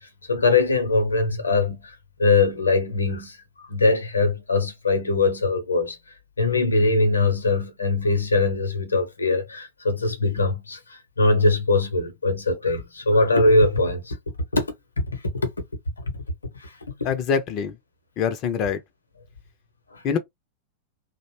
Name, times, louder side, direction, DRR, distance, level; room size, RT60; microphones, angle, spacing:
voice 1, 0.0-6.0 6.4-14.2 14.5-14.6 15.3-15.5 16.6-16.7 19.9-20.0, left 3 dB, 75° left, 0.7 m, -22 dB
voice 2, 17.0-17.8 18.2-18.8 20.0-20.2, left 6 dB, 40° left, 0.4 m, -24 dB
2.5 x 2.0 x 3.0 m
figure-of-eight pair, 90°, 0 cm